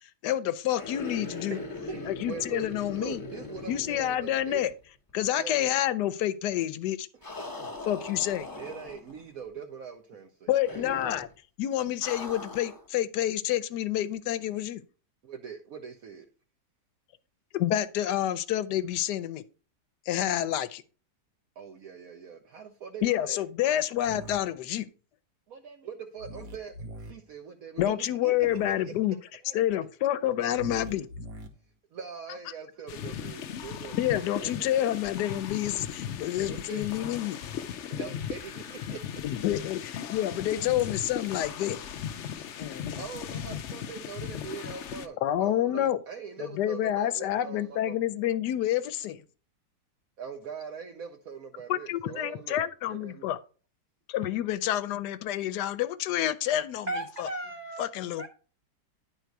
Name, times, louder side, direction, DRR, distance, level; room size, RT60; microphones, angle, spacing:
voice 1, 0.2-1.6 2.1-3.2 3.7-4.7 5.1-7.1 7.9-8.5 10.5-11.3 11.6-14.8 17.5-19.4 20.1-20.8 23.0-24.9 27.8-29.2 29.5-31.1 34.0-37.4 39.2-41.8 42.6-43.0 45.2-46.0 46.6-49.2 51.7-53.4 54.1-56.9 57.2-57.3 57.8-58.3, left 12 dB, 85° left, 1.2 m, -28 dB
sound 1, 0.7-4.8 5.1-5.2 7.2-9.2 10.7-11.3 12.0-12.9, left 3 dB, 15° left, 0.7 m, -40 dB
voice 2, 1.5-2.7 2.9-4.6 5.4-5.6 7.6-7.8 8.5-10.5 15.2-16.3 21.6-23.4 25.5-29.2 29.4-29.5 30.2-30.5 31.9-34.9 36.5-36.8 37.9-39.3 42.9-48.0 50.2-52.6 52.9-53.3, right 6 dB, 65° right, 1.1 m, -42 dB
sound 2, 24.0-24.4 26.2-27.1 28.4-28.7 30.5-31.5, right 1 dB, 90° right, 1.8 m, -42 dB
sound 3, 32.9-45.1, left 9 dB, 65° left, 0.7 m, -37 dB
voice 3, 56.9-57.9 58.2-58.3, right 2 dB, 40° right, 0.6 m, -35 dB
10.0 x 4.0 x 4.6 m
omnidirectional pair, 1.7 m